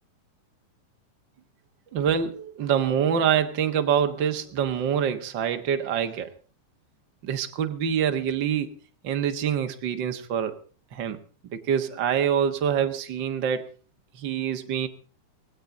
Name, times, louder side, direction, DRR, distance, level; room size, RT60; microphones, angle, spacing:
voice 1, 1.9-6.3 7.2-8.7 9.0-10.6 10.9-11.2 11.7-13.6 14.2-14.9, right 8 dB, 75° right, 7 dB, 1.0 m, -25 dB
19.0 x 16.5 x 3.9 m, 0.39 s
omnidirectional pair, 4.4 m